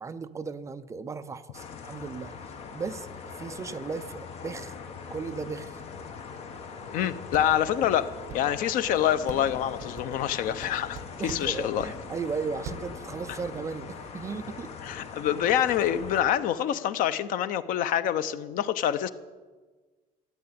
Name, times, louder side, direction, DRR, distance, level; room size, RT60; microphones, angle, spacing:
voice 1, 0.0-2.3 2.7-4.8 5.1-5.8 11.2-14.7, right 5 dB, 20° right, 11 dB, 0.4 m, -36 dB
sound 1, 1.5-16.2, left 5 dB, 40° left, 1.3 m, -41 dB
voice 2, 6.9-11.9 14.8-19.1, left 10 dB, 60° left, 14 dB, 0.8 m, -26 dB
sound 2, 7.0-7.1 7.3-7.9 8.3-8.4 8.8-9.0 9.3-10.7 10.9-11.9 12.3-12.4 12.6-12.9, right 6 dB, 50° right, 1.6 m, -40 dB
14.0 x 9.5 x 8.7 m, 1.4 s
cardioid pair, 175°, 16 cm